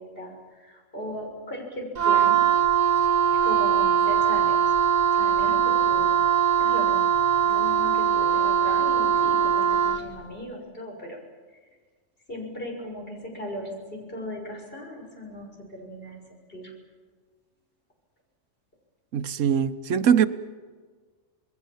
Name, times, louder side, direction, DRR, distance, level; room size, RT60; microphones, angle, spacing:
voice 1, 0.0-2.4 3.3-4.7 5.1-6.2 6.6-7.1 7.4-11.2 12.3-16.2 16.5-16.7, equal, 45° left, 0 dB, 6.6 m, -37 dB
Wind instrument woodwind instrument, 1.9-10.1, right 9 dB, 35° right, 1.2 m, -21 dB
voice 2, 19.1-20.3, right 8 dB, 80° right, 12 dB, 1.2 m, -21 dB
27.5 x 20.5 x 7.3 m, 1.5 s
omnidirectional pair, 1.3 m